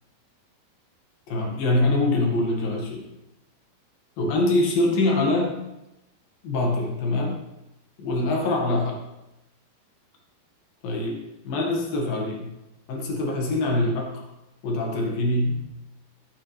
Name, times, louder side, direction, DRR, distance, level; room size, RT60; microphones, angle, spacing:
voice 1, 1.3-3.1 4.2-5.6 6.4-7.4 8.0-9.0 10.8-12.5 12.9-14.2 14.6-15.6, left 2 dB, 60° left, 0 dB, 3.2 m, -24 dB
14.0 x 9.5 x 3.3 m, 0.94 s
omnidirectional pair, 5.1 m